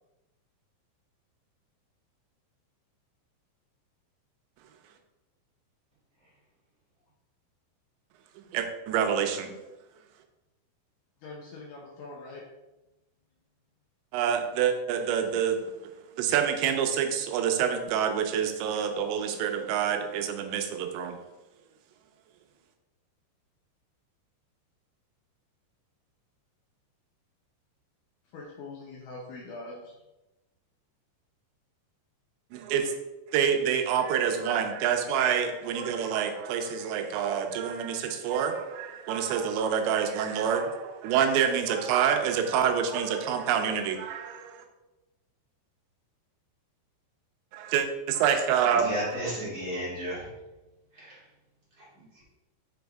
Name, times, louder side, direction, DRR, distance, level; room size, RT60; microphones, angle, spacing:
voice 1, 8.4-9.5 14.1-21.2 32.5-33.0 33.3-44.6 47.5-49.3, right 8 dB, 85° right, 5 dB, 3.0 m, -27 dB
voice 2, 11.2-12.4 28.3-29.9, left 2 dB, 90° left, -3 dB, 1.8 m, -43 dB
voice 3, 48.7-50.3 50.9-51.2 51.8-51.9 52.1-52.2, equal, 30° right, -7 dB, 2.0 m, -34 dB
6.4 x 5.1 x 3.5 m, 1.0 s
omnidirectional pair, 5.1 m